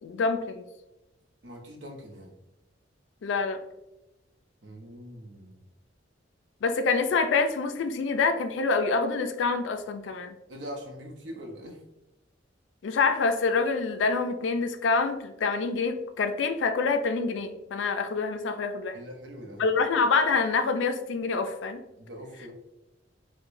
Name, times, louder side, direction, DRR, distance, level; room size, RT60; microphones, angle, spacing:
voice 1, 0.0-0.6 3.2-3.6 6.6-10.4 12.8-19.0 19.6-21.8, left 4 dB, 80° left, 8 dB, 0.4 m, -26 dB
voice 2, 1.4-2.4 4.6-5.6 10.5-11.8 18.9-19.7 22.0-22.5, equal, 75° right, 1 dB, 0.8 m, -42 dB
4.6 x 2.2 x 2.5 m, 0.96 s
head